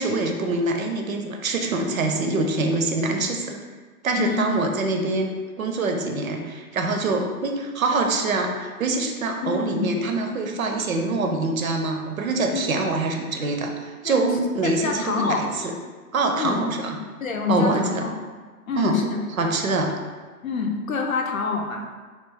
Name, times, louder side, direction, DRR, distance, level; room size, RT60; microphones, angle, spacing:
voice 1, 0.0-3.6 4.0-5.3 5.6-15.7 16.1-17.0 17.5-18.0 18.8-19.0 19.4-19.9, right 3 dB, 60° right, 3 dB, 0.6 m, -24 dB
voice 2, 4.2-4.5 9.4-9.9 12.5-12.7 14.0-14.2 14.6-15.5 16.4-16.6 16.9-18.2 18.7-19.5 20.4-22.0, left 4 dB, 60° left, 2 dB, 0.6 m, -27 dB
3.0 x 2.4 x 3.7 m, 1.4 s
figure-of-eight pair, 140°, 46 cm